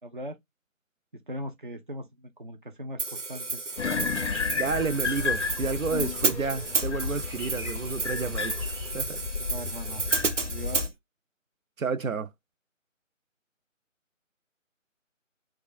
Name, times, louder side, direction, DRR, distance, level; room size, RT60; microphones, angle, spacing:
voice 1, 0.0-0.4 1.3-3.6 9.5-10.1 10.5-10.9, equal, 40° right, 0.7 m, -39 dB
Hi-hat, 3.0-10.9, right 3 dB, 65° right, 0.9 m, -32 dB
sound 1, 3.7-8.9, equal, 20° right, 1.0 m, -45 dB
sound 2, 3.8-10.9, left 5 dB, 60° left, 0.5 m, -32 dB
voice 2, 4.6-8.5 8.9-9.2 11.8-12.3, right 5 dB, 80° right, 0.6 m, -30 dB
4.7 x 2.3 x 2.5 m
figure-of-eight pair, 160°, 40 cm